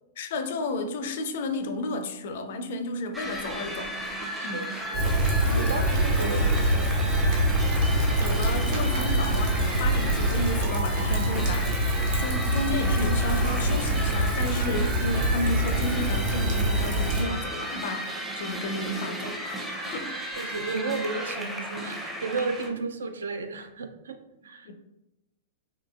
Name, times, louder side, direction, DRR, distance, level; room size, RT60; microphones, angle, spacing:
voice 1, 0.2-3.9 4.4-4.7 8.2-11.7 12.2-19.6 19.9-20.2 22.7-22.8 24.7-24.8, left 2 dB, 55° left, 7 dB, 0.4 m, -32 dB
sound 1, 3.1-22.7, equal, 5° right, 0.5 m, -34 dB
voice 2, 4.4-5.2 5.4-7.0 18.9-19.0 20.4-24.2 24.4-24.7, right 4 dB, 65° right, 7 dB, 0.3 m, -33 dB
Rain, 4.9-17.2, right 1 dB, 50° right, 0.8 m, -25 dB
3.7 x 2.6 x 2.3 m, 0.93 s
figure-of-eight pair, 100°, 0 cm